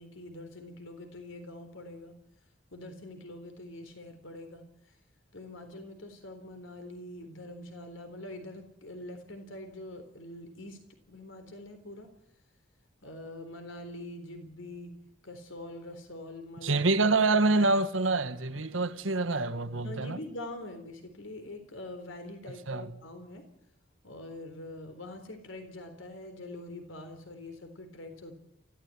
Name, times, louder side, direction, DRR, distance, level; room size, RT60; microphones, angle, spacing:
voice 1, 0.0-2.2 2.7-4.9 5.3-12.1 13.0-15.0 15.2-16.9 19.8-23.5 24.0-28.3, left 1 dB, 90° left, 3.9 m, -44 dB
voice 2, 16.6-20.2 22.7-22.9, right 3 dB, 85° right, 1.6 m, -26 dB
24.5 x 16.5 x 9.7 m
head